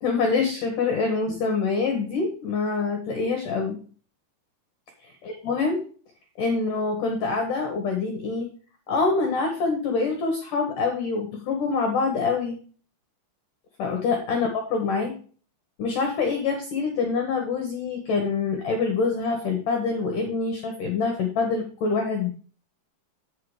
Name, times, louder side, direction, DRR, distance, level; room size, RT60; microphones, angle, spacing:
voice 1, 0.0-3.8 5.0-5.8 6.4-8.5 8.9-12.6 13.8-15.1 15.8-22.3, left 4 dB, 75° left, 3 dB, 1.9 m, -25 dB
8.5 x 5.8 x 4.8 m, 0.41 s
omnidirectional pair, 5.4 m